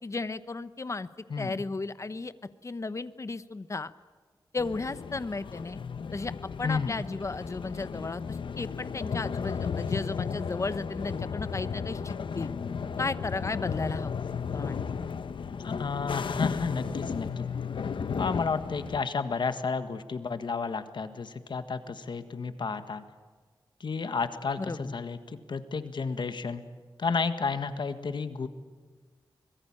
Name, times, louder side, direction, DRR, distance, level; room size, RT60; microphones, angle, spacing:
voice 1, 0.0-1.1 1.4-2.3 2.6-3.9 4.5-5.8 6.1-6.3 6.6-12.5 13.0-14.1 14.5-14.7 24.6-24.9, left 3 dB, 35° left, 14 dB, 1.0 m, -34 dB
voice 2, 1.3-1.6 6.6-6.9 15.6-17.5 18.2-23.0 23.8-26.6 27.0-28.5, left 5 dB, 70° left, 10 dB, 1.6 m, -31 dB
sound 1, 4.6-19.0, left 6 dB, 85° left, 1.0 m, -34 dB
24.5 x 22.0 x 8.8 m, 1.4 s
wide cardioid pair, 105°, 8 cm